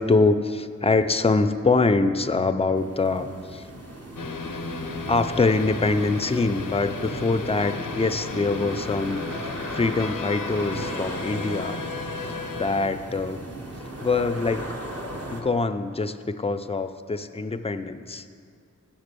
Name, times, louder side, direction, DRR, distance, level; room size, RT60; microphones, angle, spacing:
voice 1, 0.0-3.7 5.1-11.8 12.6-13.4 14.0-14.7 15.3-18.2, left 3 dB, 20° left, 10 dB, 0.4 m, -24 dB
sound 1, 2.2-2.8 3.1-3.3 3.8-3.9 4.2-6.8 7.1-7.3 8.2-10.2, equal, 75° right, 1.6 m, -53 dB
sound 2, 2.7-15.4, right 1 dB, 50° right, 1.1 m, -37 dB
sound 3, 4.2-12.9, left 4 dB, 90° left, 0.6 m, -34 dB
7.3 x 6.1 x 6.7 m, 2.3 s
wide cardioid pair, 40°, 32 cm